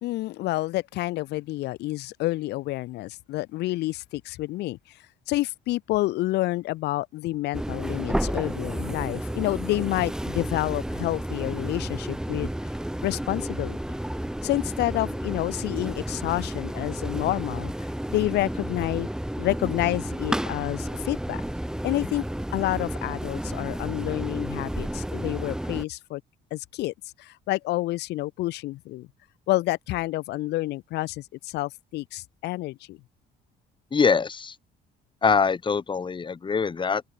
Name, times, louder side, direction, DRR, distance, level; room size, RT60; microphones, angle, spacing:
voice 1, 0.0-5.0 5.3-12.5 13.0-13.8 14.4-17.7 18.1-19.1 19.4-21.4 21.8-22.2 22.5-26.2 26.5-29.1 29.5-33.0, left 18 dB, 85° left, 4.0 m, -29 dB
sound 1, 7.5-25.8, right 1 dB, 5° right, 5.4 m, -31 dB
voice 2, 33.9-34.5 35.2-37.0, left 5 dB, 30° left, 2.9 m, -23 dB
open air
cardioid pair, 110°, 17 cm